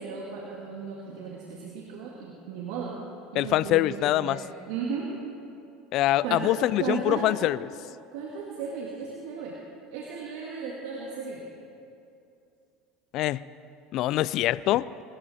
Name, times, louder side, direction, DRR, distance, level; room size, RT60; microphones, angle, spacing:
voice 1, 0.0-3.0 3.3-5.1 6.2-7.3 8.1-9.6 9.9-11.5, right 5 dB, 75° right, -2 dB, 1.9 m, -35 dB
voice 2, 3.4-4.4 5.9-7.6 13.1-13.4 13.9-14.9, left 15 dB, 60° left, 19 dB, 0.4 m, -24 dB
21.5 x 13.0 x 4.2 m, 2.6 s
hypercardioid pair, 85°, 0 cm